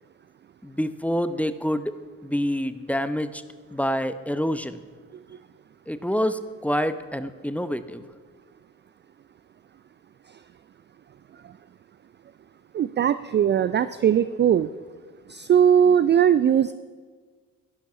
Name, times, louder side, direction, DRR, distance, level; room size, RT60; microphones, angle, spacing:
voice 1, 0.6-1.9 2.2-3.4 3.7-4.8 5.9-8.0, equal, 5° left, 12 dB, 0.7 m, -27 dB
voice 2, 12.7-14.7 15.3-16.7, right 9 dB, 25° right, 14 dB, 0.4 m, -19 dB
13.5 x 11.5 x 5.8 m, 1.5 s
figure-of-eight pair, 45°, 43 cm